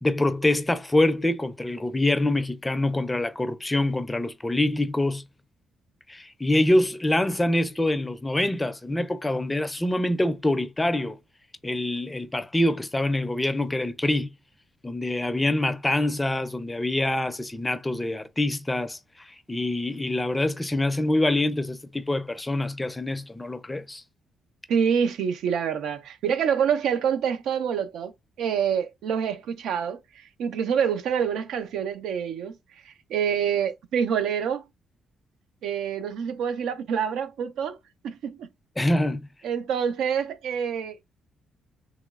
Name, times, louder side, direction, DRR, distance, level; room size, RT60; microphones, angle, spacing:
voice 1, 0.0-5.2 6.1-11.2 11.6-14.3 14.8-24.0 38.8-39.2, left 1 dB, 15° left, 0.4 m, -25 dB
voice 2, 24.7-28.1 28.4-32.6 32.8-34.7 35.6-37.8 38.0-38.5 39.4-41.1, right 7 dB, 80° right, 0.4 m, -26 dB
3.0 x 3.0 x 2.3 m
cardioid pair, 90°, 0 cm